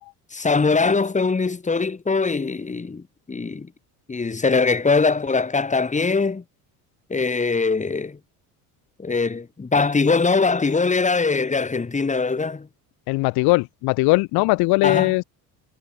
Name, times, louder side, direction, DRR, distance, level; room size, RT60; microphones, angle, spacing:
voice 1, 0.3-3.7 4.1-6.4 7.1-8.2 9.0-12.7 14.8-15.1, left 4 dB, 20° left, 7.1 m, -22 dB
voice 2, 13.1-15.2, left 24 dB, 80° left, 1.3 m, -20 dB
cardioid pair, 120°, 37 cm